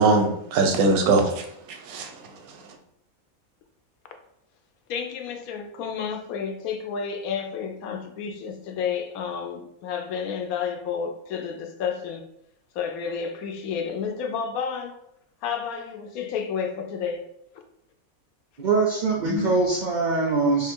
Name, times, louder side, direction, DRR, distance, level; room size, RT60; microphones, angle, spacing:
voice 1, 0.0-2.1, right 3 dB, 90° right, 4 dB, 1.1 m, -21 dB
voice 2, 4.9-12.3 12.7-15.0 15.4-17.2 19.2-19.6, left 6 dB, 90° left, 5 dB, 1.0 m, -31 dB
voice 3, 18.6-20.7, right 3 dB, 65° right, -3 dB, 0.4 m, -23 dB
2.9 x 2.5 x 4.3 m, 0.76 s
omnidirectional pair, 1.5 m